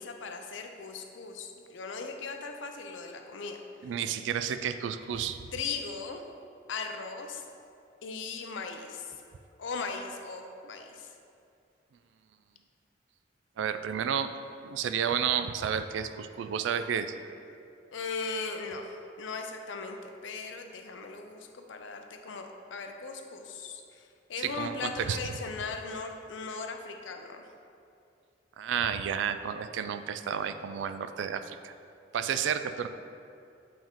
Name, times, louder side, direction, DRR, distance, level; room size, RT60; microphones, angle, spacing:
voice 1, 0.0-3.6 5.5-6.2 6.7-7.4 8.0-9.1 9.6-11.1 17.9-27.4, left 4 dB, 85° left, 5 dB, 0.5 m, -38 dB
voice 2, 3.8-5.4 13.6-14.3 14.6-17.1 24.4-25.2 28.6-31.7 32.1-32.9, right 8 dB, 80° right, 10 dB, 0.3 m, -31 dB
7.7 x 3.6 x 3.6 m, 2.5 s
head